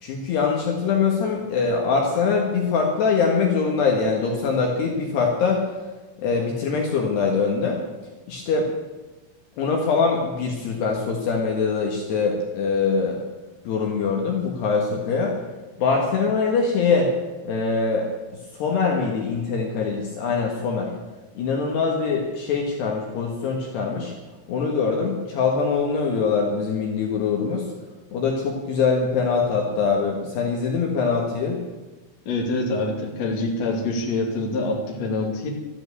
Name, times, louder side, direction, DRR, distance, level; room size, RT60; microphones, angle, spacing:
voice 1, 0.0-5.7 6.2-7.8 8.3-8.7 9.6-13.2 13.6-15.4 15.8-17.1 17.5-18.1 18.6-20.9 21.4-24.1 24.5-27.7 28.1-31.6, left 5 dB, 65° left, 0 dB, 3.3 m, -23 dB
voice 2, 32.2-35.5, left 2 dB, 40° left, 0 dB, 2.9 m, -25 dB
13.5 x 11.5 x 8.3 m, 1.2 s
omnidirectional pair, 5.9 m